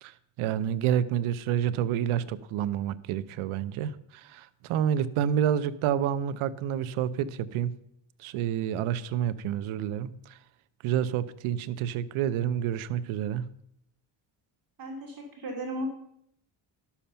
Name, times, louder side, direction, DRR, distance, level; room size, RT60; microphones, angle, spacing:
voice 1, 0.0-7.7 8.2-10.4 10.8-13.4, right 10 dB, 85° right, 16 dB, 0.8 m, -29 dB
voice 2, 14.8-15.9, equal, 45° right, 1 dB, 2.6 m, -35 dB
11.5 x 7.2 x 5.6 m, 0.73 s
cardioid pair, 100°, 48 cm